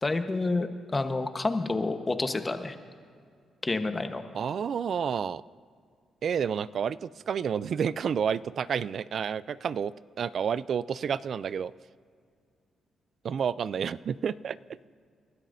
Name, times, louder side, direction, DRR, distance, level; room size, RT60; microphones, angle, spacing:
voice 1, 0.0-2.8 3.6-4.2, left 3 dB, 25° left, 7 dB, 1.1 m, -29 dB
voice 2, 4.3-5.4 6.2-11.7 13.2-14.6, right 7 dB, 60° right, 18 dB, 0.3 m, -30 dB
29.5 x 12.5 x 2.7 m, 2.2 s
cardioid pair, 90°, 0 cm